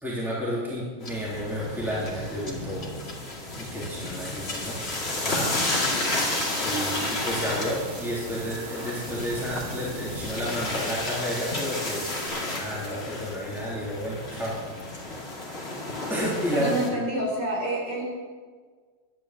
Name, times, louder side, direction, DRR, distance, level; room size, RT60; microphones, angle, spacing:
voice 1, 0.0-2.9 3.5-4.8 5.2-5.5 6.6-15.6 16.1-16.7, equal, ahead, -6 dB, 3.1 m, -31 dB
sound 1, 1.0-16.9, left 2 dB, 35° left, 2.4 m, -32 dB
sound 2, 5.4-12.3, right 4 dB, 60° right, 2.1 m, -44 dB
voice 2, 16.5-18.0, right 1 dB, 80° right, -2 dB, 4.4 m, -28 dB
11.5 x 10.5 x 7.4 m, 1.5 s
omnidirectional pair, 1.8 m